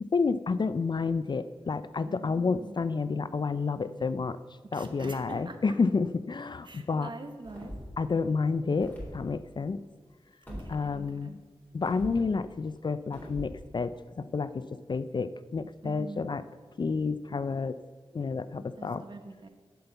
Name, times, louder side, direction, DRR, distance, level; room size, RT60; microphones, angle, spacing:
voice 1, 0.0-4.4 4.7-7.1 8.0-9.8 10.7-11.4 11.7-16.4 16.8-17.8 18.1-19.0, left 4 dB, 50° left, 13 dB, 0.4 m, -30 dB
voice 2, 2.0-3.0 4.6-5.6 6.6-7.8 10.5-11.5 15.8-16.4 18.8-19.5, right 2 dB, 50° right, 6 dB, 1.2 m, -44 dB
sound 1, 7.4-8.0 8.7-9.2 10.5-10.7 11.8-12.2 13.1-13.5, equal, 20° left, 4.0 m, -41 dB
11.5 x 5.3 x 8.0 m, 1.4 s
cardioid pair, 60°, 10 cm